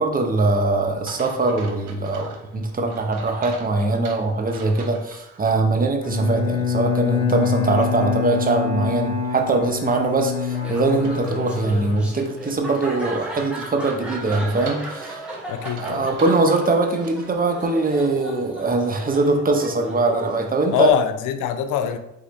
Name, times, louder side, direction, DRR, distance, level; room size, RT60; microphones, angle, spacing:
voice 1, 0.0-15.2 15.8-20.9, right 3 dB, 30° right, 0.7 m, -22 dB
sound 1, 1.1-5.6 6.0-6.1 11.0-17.4, right 4 dB, 85° right, 0.8 m, -43 dB
Bowed string instrument, 6.0-12.6, left 7 dB, 70° left, 0.9 m, -26 dB
voice 2, 7.8-8.1 15.5-16.2 20.7-22.0, left 9 dB, 85° left, 0.5 m, -24 dB
Laughter, 10.5-20.9, right 1 dB, 5° right, 1.3 m, -36 dB
3.9 x 3.8 x 3.2 m
cardioid pair, 90°, 30 cm